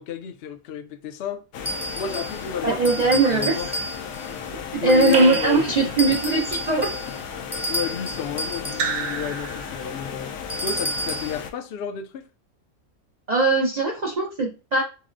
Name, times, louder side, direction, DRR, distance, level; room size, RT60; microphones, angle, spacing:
voice 1, 0.0-1.4 1.9-3.7 4.8-6.2 7.1-7.2 7.7-10.3 10.6-12.2, left 8 dB, 60° left, 0.6 m, -31 dB
sound 1, 1.5-11.5, left 7 dB, 90° left, 1.1 m, -35 dB
sound 2, 1.7-2.4 2.8-4.3 4.9-5.6 6.0-8.9 10.5-11.4, right 1 dB, ahead, 0.6 m, -31 dB
voice 2, 2.6-3.6 4.7-6.9 13.3-14.8, right 3 dB, 55° right, 0.4 m, -20 dB
Raindrop / Drip, 5.1-6.4 8.7-10.1, right 5 dB, 70° right, 1.0 m, -30 dB
5.9 x 2.0 x 2.5 m
omnidirectional pair, 1.5 m